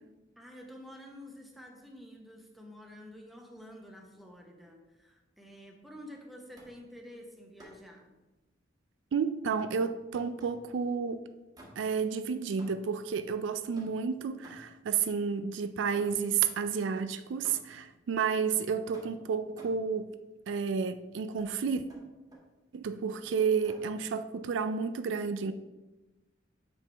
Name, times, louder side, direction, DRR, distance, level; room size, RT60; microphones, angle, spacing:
voice 1, 0.4-8.1, equal, ahead, 0.9 m, -49 dB
sound 1, 6.5-6.9 7.6-8.0 9.6-10.7 11.5-12.1 12.6-13.0 13.7-14.9 16.0-16.4 17.4-17.9 18.9-19.9 21.4-21.5 21.9-22.5 23.6-24.0, right 1 dB, 20° right, 1.2 m, -54 dB
voice 2, 9.1-11.3 11.8-20.1 20.5-21.8 22.7-25.5, right 6 dB, 80° right, 0.4 m, -31 dB
6.9 x 5.1 x 3.3 m
head